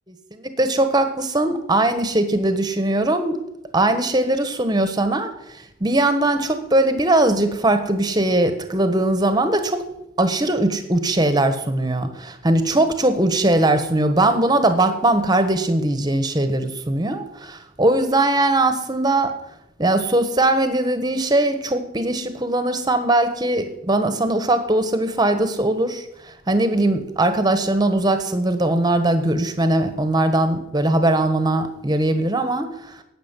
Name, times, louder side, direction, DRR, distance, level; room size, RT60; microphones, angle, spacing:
voice 1, 0.3-3.4 3.7-5.3 5.8-9.8 10.2-19.3 19.8-26.0 26.5-32.7, right 1 dB, 20° right, 9 dB, 1.3 m, -20 dB
12.0 x 8.9 x 7.5 m, 0.86 s
head